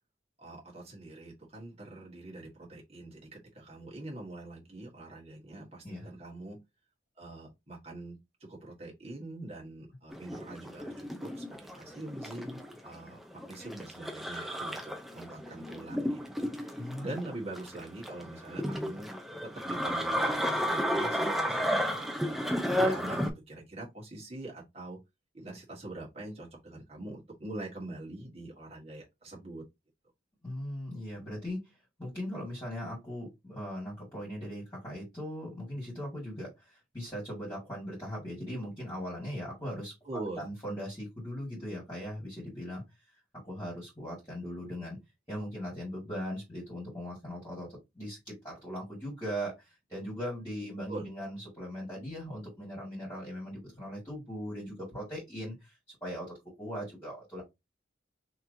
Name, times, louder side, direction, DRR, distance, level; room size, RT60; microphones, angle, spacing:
voice 1, 0.4-6.6 7.2-8.1 8.5-14.8 15.1-19.1 19.6-25.0 25.3-29.6 40.0-40.5 50.9-51.0, right 2 dB, 30° right, 1.6 m, -44 dB
sound 1, 10.1-23.3, equal, ahead, 0.5 m, -33 dB
voice 2, 16.8-17.1 30.4-45.0 45.3-57.4, equal, 15° left, 2.0 m, -39 dB
5.6 x 3.0 x 2.7 m
head